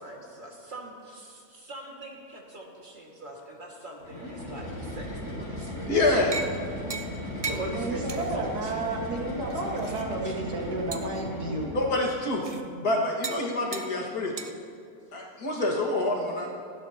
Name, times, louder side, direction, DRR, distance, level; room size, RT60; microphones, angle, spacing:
voice 1, 0.0-6.4 7.4-9.3 9.6-9.7 10.2-10.3, right 1 dB, 30° right, -1 dB, 2.0 m, -41 dB
sound 1, 4.0-12.0, left 1 dB, 45° left, 4.1 m, -37 dB
voice 2, 5.9-6.4 11.7-12.5 12.8-14.3 15.1-16.5, left 2 dB, 75° left, -2 dB, 2.3 m, -26 dB
sound 2, 6.3-6.6 6.9-7.2 7.4-7.7 8.1-8.3 8.7-8.8 9.5-10.0 10.9-11.2 12.4-12.6 13.2-13.5 13.7-13.9 14.4-14.5, right 4 dB, 55° right, 0.4 m, -35 dB
voice 3, 7.7-11.7 12.5-12.9, right 2 dB, 85° right, -1 dB, 2.3 m, -32 dB
27.5 x 11.5 x 2.9 m, 2.3 s
omnidirectional pair, 1.7 m